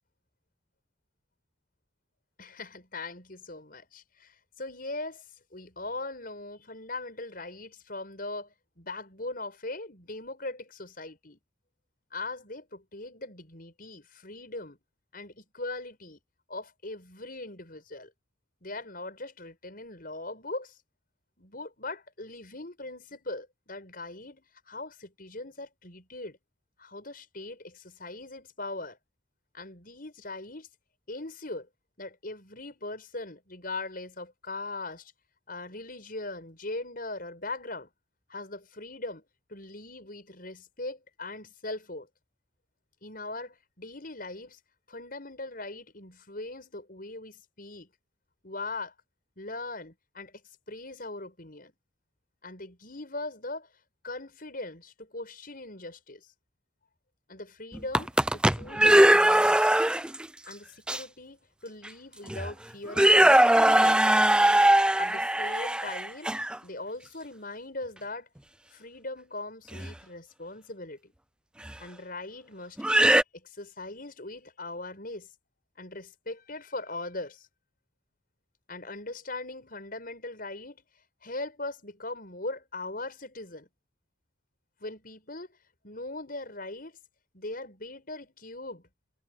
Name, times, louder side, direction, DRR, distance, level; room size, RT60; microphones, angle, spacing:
voice 1, 2.4-5.2 5.5-11.4 12.1-14.8 15.1-16.2 16.5-18.1 18.6-20.8 21.4-26.4 26.8-29.0 29.5-30.7 31.1-31.7 32.0-35.1 35.5-37.9 38.3-39.2 39.5-42.1 43.0-44.6 44.9-47.9 48.4-48.9 49.4-50.4 50.7-51.7 52.4-53.7 54.0-56.3 57.3-59.7 60.4-64.2 65.0-66.3 66.6-68.3 68.7-71.1 71.8-75.3 75.8-77.5 78.7-80.8 81.2-83.7 84.8-85.5 85.8-86.9 87.3-88.9, left 2 dB, 50° left, 7.2 m, -40 dB
sound 1, 57.7-60.2 60.9-61.0 61.8-61.9 62.3-62.5 62.9-66.6 69.7-69.9 71.7-71.8 72.8-73.2, right 1 dB, 5° right, 0.4 m, -21 dB
head